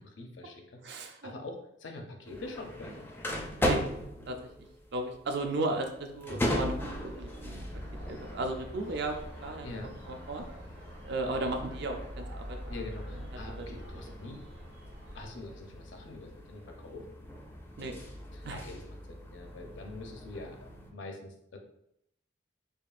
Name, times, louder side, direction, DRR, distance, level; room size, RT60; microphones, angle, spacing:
voice 1, 0.0-2.9 9.6-9.9 12.7-14.4 15.1-17.1 18.3-18.8 19.1-20.6 20.9-21.6, left 2 dB, 75° left, 3 dB, 0.6 m, -44 dB
voice 2, 0.8-1.3 3.6-3.8 4.3-7.7 8.1-9.7 10.1-10.4 11.0-12.6 13.3-14.0 17.8-17.9 18.4-18.6, right 2 dB, 60° right, 4 dB, 0.5 m, -35 dB
sound 1, 2.3-20.9, equal, 10° left, 0.4 m, -39 dB
sound 2, 6.8-15.4, equal, 75° right, 1.4 m, -50 dB
5.2 x 2.3 x 2.4 m, 0.76 s
head